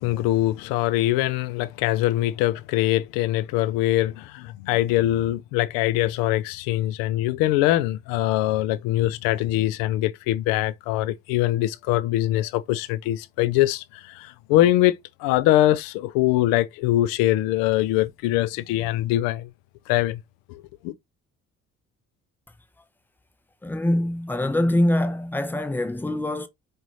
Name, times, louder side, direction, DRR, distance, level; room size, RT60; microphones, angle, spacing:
voice 1, 0.0-19.5 19.9-20.2 20.5-20.9, left 15 dB, 55° left, 0.5 m, -23 dB
voice 2, 23.6-26.5, left 1 dB, 5° left, 0.5 m, -24 dB
4.8 x 2.5 x 3.0 m
figure-of-eight pair, 50°, 41 cm